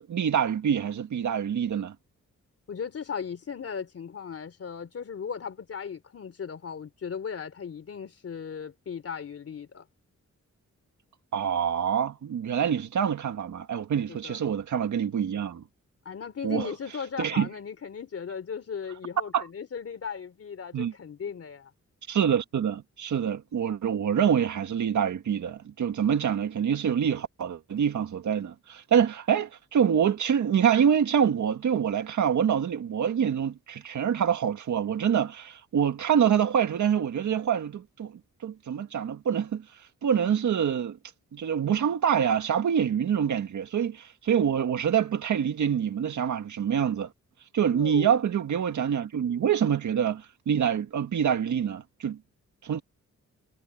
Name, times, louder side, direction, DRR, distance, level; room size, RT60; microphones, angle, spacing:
voice 1, 0.0-2.0 11.3-15.6 16.4-16.7 17.2-17.5 19.3-19.5 20.7-20.9 22.1-39.6 40.0-41.0 41.3-47.1 47.5-52.2 52.6-52.8, right 8 dB, 90° right, 1.8 m, -26 dB
voice 2, 2.7-9.9 14.1-14.4 16.0-21.7 47.7-48.1, left 6 dB, 55° left, 3.2 m, -37 dB
wide cardioid pair, 155°, 29 cm